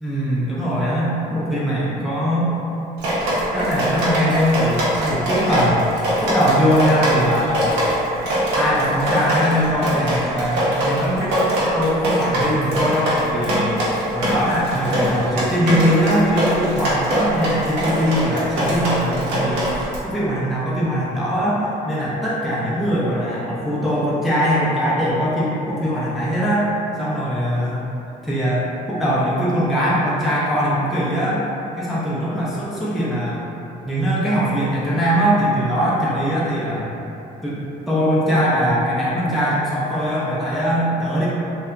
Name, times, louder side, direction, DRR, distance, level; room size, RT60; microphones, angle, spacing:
voice 1, 0.0-2.5 3.5-5.8 6.2-8.2 8.6-13.8 14.1-27.9 28.2-31.5 31.8-33.4 33.8-36.9 37.4-41.3, equal, ahead, -8 dB, 0.4 m, -21 dB
Drip, 3.0-20.0, equal, 85° right, 0.7 m, -22 dB
2.7 x 2.1 x 2.3 m, 2.9 s
cardioid pair, 110°, 17 cm